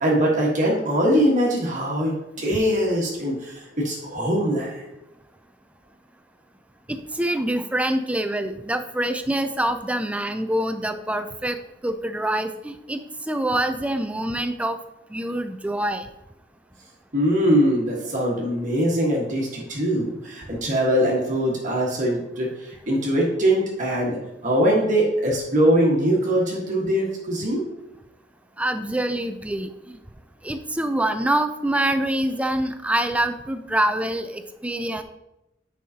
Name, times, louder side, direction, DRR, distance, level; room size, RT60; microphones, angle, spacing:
voice 1, 0.0-4.8 17.1-27.6, equal, 40° right, -3 dB, 1.5 m, -22 dB
voice 2, 6.9-14.8 15.1-16.1 28.6-30.0 30.4-35.0, right 1 dB, 5° right, 9 dB, 0.4 m, -25 dB
9.3 x 5.5 x 2.8 m, 0.91 s
head